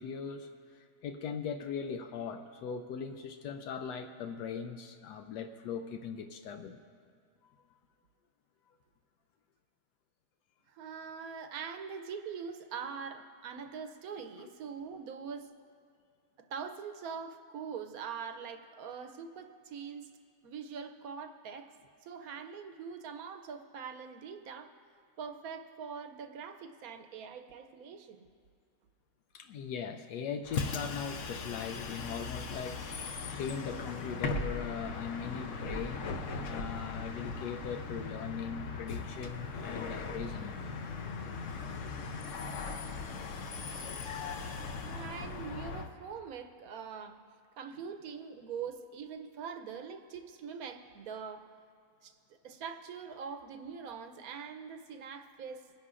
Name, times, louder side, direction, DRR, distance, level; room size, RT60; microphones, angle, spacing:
voice 1, 0.0-6.8 7.4-7.5 14.4-14.5 29.3-32.8 33.3-40.6, left 6 dB, 85° left, 6 dB, 1.2 m, -40 dB
voice 2, 10.7-15.5 16.5-20.1 20.4-21.7 22.0-24.7 25.2-28.3 44.8-47.2 47.6-51.5 52.0-52.2 52.4-55.7, right 6 dB, 70° right, 6 dB, 1.0 m, -43 dB
Bus, 30.4-45.9, left 4 dB, 60° left, 1.0 m, -39 dB
25.5 x 10.5 x 2.5 m, 2.2 s
omnidirectional pair, 1.7 m